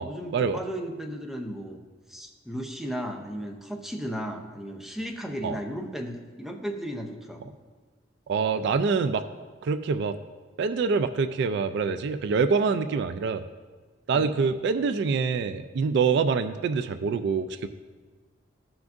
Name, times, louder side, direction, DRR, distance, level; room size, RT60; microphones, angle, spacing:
voice 1, 0.0-1.8 2.1-7.5 14.1-14.3, equal, ahead, 2 dB, 0.7 m, -35 dB
voice 2, 8.3-9.2 9.6-10.2 10.6-13.4 14.1-17.7, right 5 dB, 65° right, 10 dB, 0.3 m, -25 dB
14.0 x 5.9 x 2.6 m, 1.4 s
head